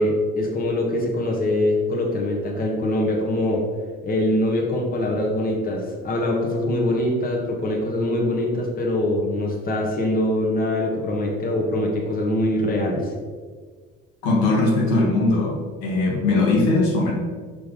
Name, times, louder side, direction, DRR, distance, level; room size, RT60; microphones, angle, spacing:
voice 1, 0.0-3.6 4.0-13.1, left 1 dB, 30° left, -1 dB, 1.3 m, -23 dB
voice 2, 14.2-17.1, left 2 dB, 80° left, -3 dB, 1.7 m, -20 dB
5.7 x 3.4 x 5.0 m, 1.6 s
supercardioid pair, 80°, 30 cm